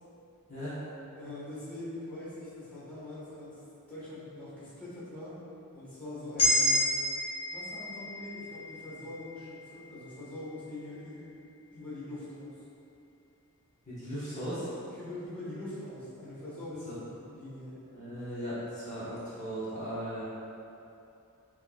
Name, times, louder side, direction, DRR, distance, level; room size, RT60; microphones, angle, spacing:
voice 1, 1.1-3.6 3.9-5.4 5.7-6.8 7.5-11.3 11.7-12.5 15.0-17.8, left 1 dB, 5° left, -12 dB, 1.4 m, -43 dB
sound 1, 6.4-10.6, left 1 dB, 90° left, 1.1 m, -31 dB
voice 2, 13.9-14.7 16.9-17.0 17.9-20.2, equal, 35° left, -12 dB, 1.1 m, -37 dB
6.5 x 3.1 x 2.4 m, 2.7 s
head